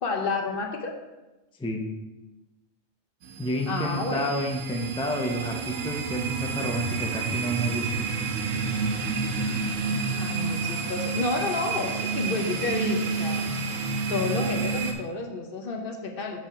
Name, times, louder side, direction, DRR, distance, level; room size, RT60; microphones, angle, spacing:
voice 1, 0.0-0.9 3.7-4.4 10.2-13.8 14.1-16.5, left 3 dB, 50° left, 2 dB, 0.9 m, -30 dB
sound 1, 3.2-14.9, right 4 dB, 90° right, 1.2 m, -29 dB
voice 2, 3.4-7.8, equal, 10° left, 2 dB, 0.3 m, -30 dB
5.7 x 4.7 x 5.1 m, 1.1 s
omnidirectional pair, 1.3 m